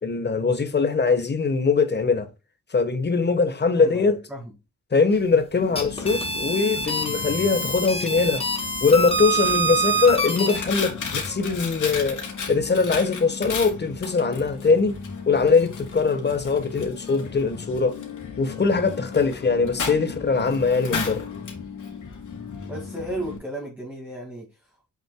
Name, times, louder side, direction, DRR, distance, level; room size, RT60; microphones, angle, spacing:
voice 1, 0.0-2.3 2.7-4.2 4.9-8.4 8.8-12.2 12.5-15.0 15.3-18.0 18.4-21.3, left 4 dB, 35° left, 1.2 m, -22 dB
voice 2, 3.7-4.5 22.7-24.9, right 1 dB, 5° right, 2.1 m, -35 dB
Coin (dropping), 5.6-23.4, left 5 dB, 70° left, 2.7 m, -35 dB
sound 1, 5.6-10.6, right 2 dB, 20° left, 1.6 m, -26 dB
7.7 x 6.3 x 2.2 m
wide cardioid pair, 140°, 31 cm